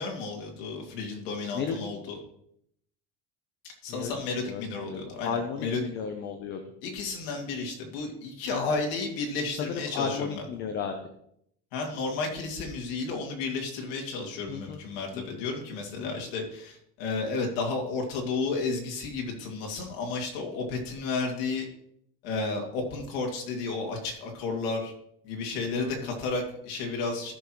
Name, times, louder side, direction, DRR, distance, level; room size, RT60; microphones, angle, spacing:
voice 1, 0.0-2.2 3.8-5.8 6.8-10.4 11.7-21.7 22.2-24.9 25.2-27.3, left 3 dB, 85° left, 1 dB, 2.6 m, -32 dB
voice 2, 3.9-6.6 8.5-8.8 9.6-10.9 14.5-14.8 15.1-15.4 16.0-16.1 25.8-26.1, left 6 dB, 35° left, 5 dB, 0.8 m, -34 dB
14.0 x 6.1 x 3.1 m, 0.71 s
cardioid pair, 170°, 29 cm